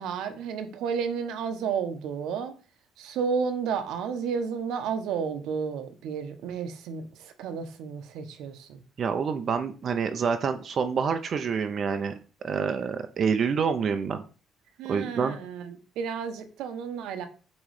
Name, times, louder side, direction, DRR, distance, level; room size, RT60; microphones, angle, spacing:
voice 1, 0.0-2.5 3.0-8.8 14.8-17.3, right 6 dB, 85° right, 8 dB, 1.1 m, -32 dB
voice 2, 9.0-12.1 12.4-14.2 14.9-15.4, right 6 dB, 40° right, 8 dB, 0.5 m, -27 dB
8.4 x 3.1 x 4.8 m, 0.37 s
cardioid pair, 160°, 0 cm